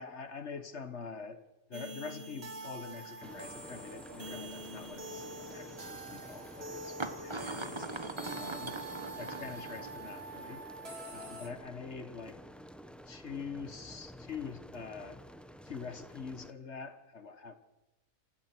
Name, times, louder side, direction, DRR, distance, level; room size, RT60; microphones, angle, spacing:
voice 1, 0.0-1.4 1.7-5.2 5.5-7.9 8.4-8.8 9.1-10.6 11.1-12.4 13.1-15.2 15.6-17.5, left 5 dB, 50° left, 10 dB, 1.6 m, -45 dB
sound 1, 1.7-11.5, right 2 dB, 40° right, 2.4 m, -45 dB
sound 2, 2.4-2.5 3.1-3.3 4.5-4.6 5.9-6.0 7.0-10.1, right 3 dB, 20° right, 1.1 m, -41 dB
sound 3, 3.2-16.5, equal, ahead, 0.8 m, -50 dB
27.0 x 16.5 x 6.1 m, 1.0 s
omnidirectional pair, 1.6 m